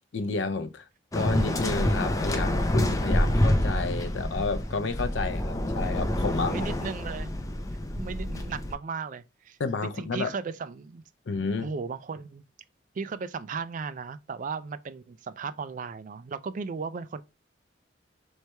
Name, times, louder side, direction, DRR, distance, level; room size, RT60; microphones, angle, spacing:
voice 1, 0.1-0.9 1.1-6.6 9.6-10.3 11.3-11.7, left 4 dB, 80° left, 0.5 m, -31 dB
Waves surf, 1.1-8.7, left 1 dB, 20° left, 0.5 m, -27 dB
voice 2, 6.5-7.3 8.0-9.6 10.0-11.0 11.6-12.4 12.9-17.2, right 5 dB, 45° right, 0.4 m, -36 dB
3.3 x 3.2 x 4.2 m
head